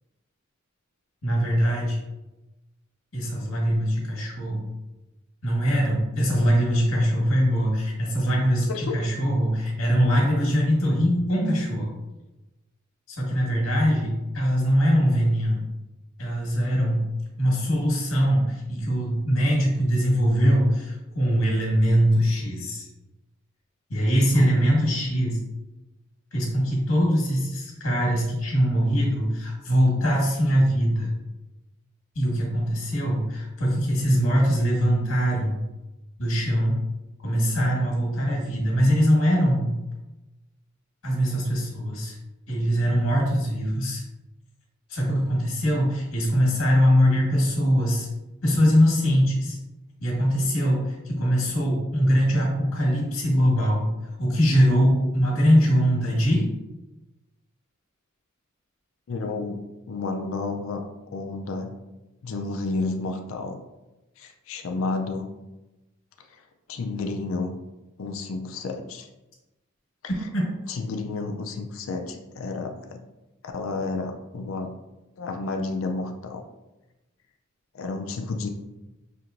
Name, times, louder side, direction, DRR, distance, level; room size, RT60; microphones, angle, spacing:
voice 1, 1.2-2.0 3.1-4.7 5.4-11.9 13.1-15.7 16.2-17.1 17.4-22.9 23.9-25.4 26.3-31.1 32.1-35.6 36.2-36.8 37.2-39.8 41.0-42.2 42.5-44.0 44.9-48.1 48.4-49.6 50.0-53.9 54.2-56.5 70.3-70.5, equal, 85° left, -4 dB, 1.4 m, -22 dB
voice 2, 8.7-9.0 24.4-24.5 59.1-59.6 59.9-60.8 61.1-61.7 62.2-63.6 64.2-65.3 66.7-67.6 68.0-69.1 70.7-73.0 73.4-74.7 75.2-76.4 77.7-78.5, left 3 dB, 70° left, 4 dB, 0.4 m, -31 dB
5.7 x 2.9 x 2.5 m, 1.0 s
head